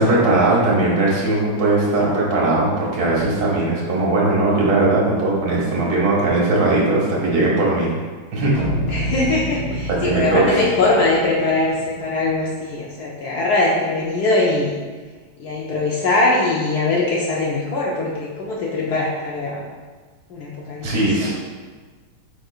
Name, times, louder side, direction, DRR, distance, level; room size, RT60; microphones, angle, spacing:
voice 1, 0.0-8.0 8.3-8.5 10.0-10.6 20.8-21.3, right 2 dB, 60° right, -5 dB, 1.7 m, -19 dB
sound 1, 8.5-12.6, equal, 20° left, 1.2 m, -29 dB
voice 2, 8.9-14.8 15.4-19.6 20.3-20.9 21.2-21.3, left 2 dB, 80° left, -4 dB, 0.8 m, -21 dB
4.7 x 4.5 x 2.3 m, 1.4 s
omnidirectional pair, 2.3 m